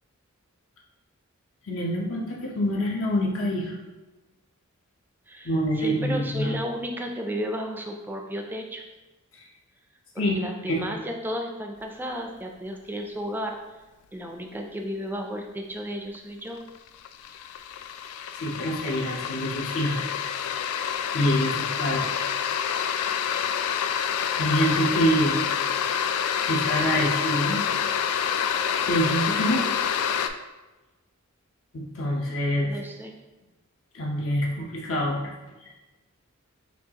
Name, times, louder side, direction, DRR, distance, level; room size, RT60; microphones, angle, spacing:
voice 1, 1.6-3.8 5.4-6.5 10.2-10.4 10.7-10.9 18.3-20.0 21.1-22.1 22.9-23.0 24.4-25.4 26.5-27.7 28.9-29.6 31.7-32.8 33.9-35.3, equal, 65° left, -2 dB, 0.7 m, -26 dB
voice 2, 5.3-8.8 10.1-13.8 14.1-16.6 32.6-33.1, equal, 10° right, 2 dB, 0.4 m, -33 dB
sound 1, 16.1-16.2 16.6-30.3, left 8 dB, 85° left, 0.3 m, -27 dB
6.1 x 2.4 x 2.8 m, 1.2 s
head